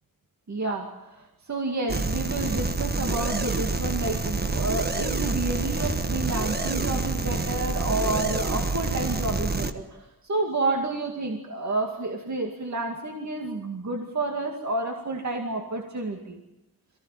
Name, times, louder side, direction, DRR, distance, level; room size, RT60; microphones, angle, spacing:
voice 1, 0.5-9.8 10.2-16.4, right 2 dB, 55° right, 2 dB, 2.3 m, -30 dB
sound 1, 1.9-9.7, right 3 dB, 30° right, 1.4 m, -27 dB
23.0 x 16.0 x 9.2 m, 0.95 s
wide cardioid pair, 110°, 35 cm